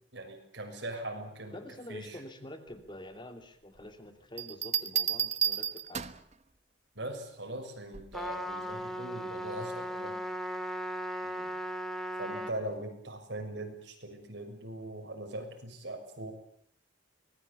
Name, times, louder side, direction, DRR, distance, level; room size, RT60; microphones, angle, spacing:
voice 1, 0.1-1.6 1.9-2.2 6.9-10.2 12.2-16.3, right 1 dB, 70° right, 4 dB, 6.3 m, -40 dB
voice 2, 1.5-6.1 11.2-11.5, left 1 dB, 25° left, 7 dB, 2.8 m, -47 dB
Bell, 4.4-6.3 7.9-8.3, right 9 dB, 40° right, 1.1 m, -32 dB
Trumpet, 8.1-12.6, equal, ahead, 2.4 m, -37 dB
24.5 x 20.5 x 8.4 m, 0.63 s
head